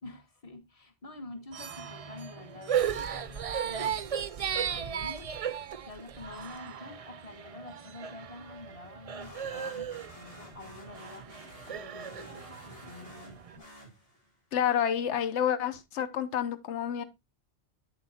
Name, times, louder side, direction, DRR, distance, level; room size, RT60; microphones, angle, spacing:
voice 1, 0.0-5.4 5.8-11.3 11.7-13.6, left 2 dB, 35° left, 1.4 m, -47 dB
sound 1, 1.5-13.6, right 8 dB, 50° right, 0.4 m, -36 dB
sound 2, 9.2-14.4, left 1 dB, 60° left, 2.9 m, -51 dB
voice 2, 14.5-17.0, left 9 dB, 90° left, 1.0 m, -29 dB
8.7 x 7.6 x 2.7 m
omnidirectional pair, 1.1 m